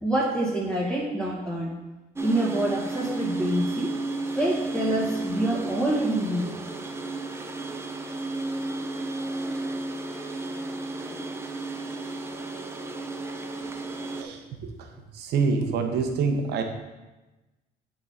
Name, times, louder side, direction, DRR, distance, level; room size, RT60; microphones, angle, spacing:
voice 1, 0.0-1.7 2.2-3.9 4.3-6.5, right 1 dB, 5° left, -7 dB, 1.7 m, -26 dB
sound 1, 2.2-14.2, right 2 dB, 15° right, 0.6 m, -33 dB
voice 2, 14.2-14.7 15.1-16.6, right 4 dB, 75° right, 4 dB, 1.0 m, -26 dB
8.7 x 3.9 x 4.0 m, 1.1 s
cardioid pair, 110°, 17 cm